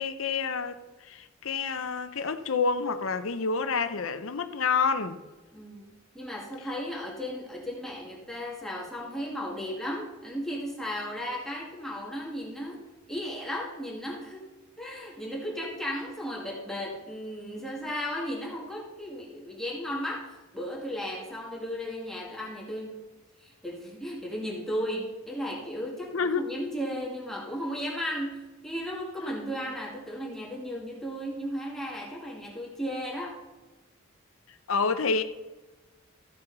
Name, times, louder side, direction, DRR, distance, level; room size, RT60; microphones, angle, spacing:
voice 1, 0.0-5.2 26.1-26.5 34.7-35.2, left 5 dB, 70° left, 0.7 m, -28 dB
voice 2, 5.5-14.5 14.8-23.1 23.4-33.4, equal, ahead, 2.1 m, -35 dB
14.5 x 6.8 x 4.0 m
head